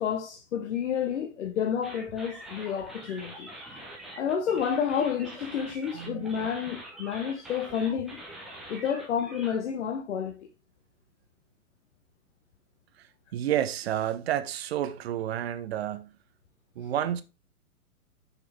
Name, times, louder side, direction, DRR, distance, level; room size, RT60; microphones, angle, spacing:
voice 1, 0.0-3.5 4.2-8.2 8.7-10.5, left 8 dB, 55° left, 0.9 m, -30 dB
sound 1, 1.8-9.6, right 1 dB, ahead, 0.4 m, -44 dB
voice 2, 5.9-6.3 13.0-16.1 16.8-17.2, right 11 dB, 45° right, 0.7 m, -30 dB
5.9 x 5.9 x 3.4 m
figure-of-eight pair, 115°, 44 cm